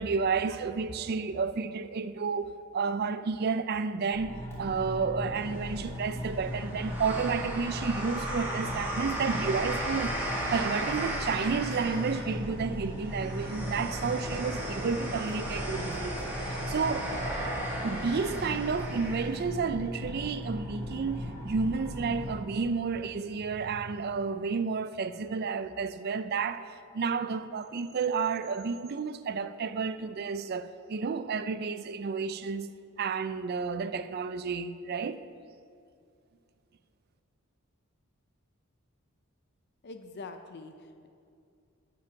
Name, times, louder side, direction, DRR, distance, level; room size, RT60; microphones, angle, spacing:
voice 1, 0.0-17.1 17.8-26.7 26.9-35.2, right 5 dB, 45° right, 0.4 m, -31 dB
sound 1, 4.1-22.3, equal, 10° left, 2.8 m, -38 dB
sound 2, 5.3-19.6, right 1 dB, 10° right, 1.8 m, -36 dB
voice 2, 39.8-41.1, left 3 dB, 50° left, 0.5 m, -44 dB
9.2 x 7.6 x 5.8 m
head